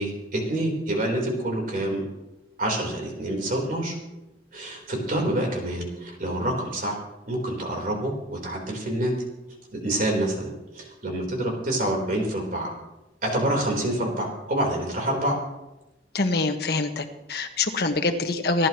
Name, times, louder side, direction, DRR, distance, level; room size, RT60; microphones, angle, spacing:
voice 1, 0.0-2.0 2.6-3.9 4.5-7.0 7.3-9.1 9.7-12.7 13.2-15.4, right 1 dB, 50° right, 1 dB, 3.9 m, -27 dB
voice 2, 16.1-18.7, left 3 dB, 65° left, 5 dB, 1.5 m, -25 dB
27.5 x 11.5 x 3.0 m, 0.97 s
head